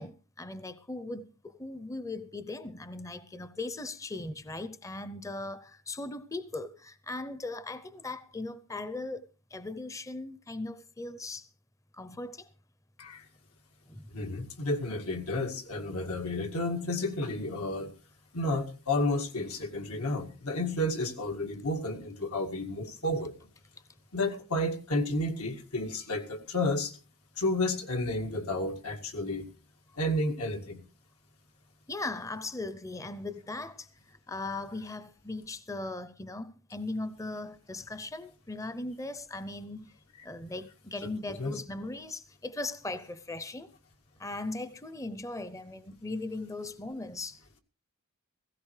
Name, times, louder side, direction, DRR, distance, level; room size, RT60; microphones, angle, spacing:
voice 1, 0.0-9.3 9.5-11.5 11.9-12.5 13.9-14.1 31.9-39.9 40.2-43.7 44.2-47.6, left 2 dB, 15° left, 0.6 m, -39 dB
voice 2, 14.1-17.9 18.3-23.3 24.1-26.9 27.4-29.5 30.0-30.8 41.0-41.6, left 1 dB, 90° left, 2.1 m, -31 dB
17.0 x 15.5 x 3.2 m
head